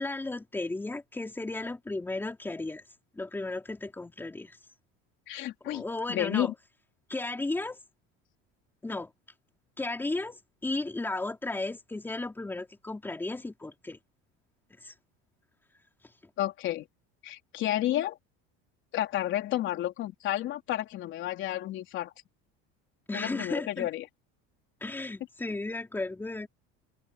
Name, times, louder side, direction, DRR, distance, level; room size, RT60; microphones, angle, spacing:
voice 1, 0.0-2.8 3.1-4.6 5.6-6.5 7.1-7.8 8.8-9.1 9.8-14.0 14.8-14.9 16.2-16.3 23.1-23.9 24.8-26.5, left 2 dB, 5° left, 4.1 m, -34 dB
voice 2, 5.3-5.8 6.1-6.5 16.4-16.9 17.2-18.2 18.9-22.1 23.1-24.1, left 13 dB, 40° left, 3.6 m, -31 dB
cardioid pair, 175°, 29 cm